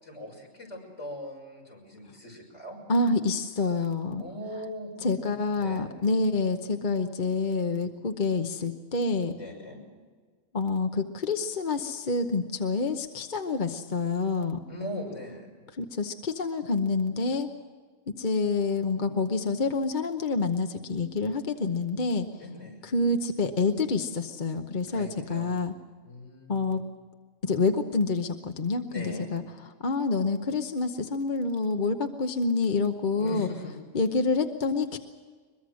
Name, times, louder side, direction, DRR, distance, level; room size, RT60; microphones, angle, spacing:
voice 1, 0.0-2.8 4.2-5.9 9.4-9.8 14.7-15.5 22.4-22.8 24.9-25.6 26.0-26.8 28.9-29.3 33.1-33.7, left 1 dB, 70° left, 0 dB, 6.7 m, -40 dB
voice 2, 2.9-4.2 5.0-9.3 10.5-14.6 15.8-17.5 18.1-22.3 22.8-25.7 26.5-26.8 27.4-29.4 29.8-33.5 33.9-35.0, left 3 dB, 40° left, 5 dB, 1.1 m, -27 dB
22.5 x 22.5 x 6.3 m, 1.5 s
omnidirectional pair, 1.3 m